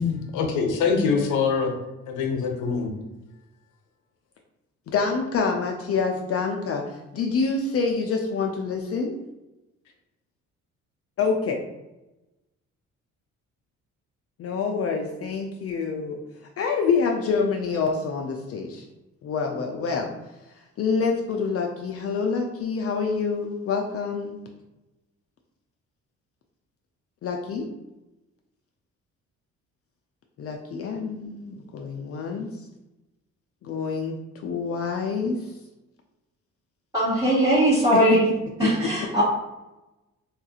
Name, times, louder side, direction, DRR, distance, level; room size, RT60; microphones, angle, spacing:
voice 1, 0.0-1.7 2.1-2.9, left 5 dB, 85° left, 3 dB, 0.7 m, -24 dB
voice 2, 4.9-9.1 11.2-11.6 14.4-16.2 16.6-18.8 19.2-20.1 20.8-24.4 27.2-27.7 30.4-32.7 33.6-34.1 34.4-35.5 37.9-38.2 38.6-38.7 39.0-39.1, left 5 dB, 50° left, 2 dB, 0.4 m, -26 dB
voice 3, 36.9-38.2 38.6-39.2, right 1 dB, 15° right, -10 dB, 1.1 m, -20 dB
3.5 x 2.3 x 2.8 m, 0.99 s
cardioid pair, 90°, 30 cm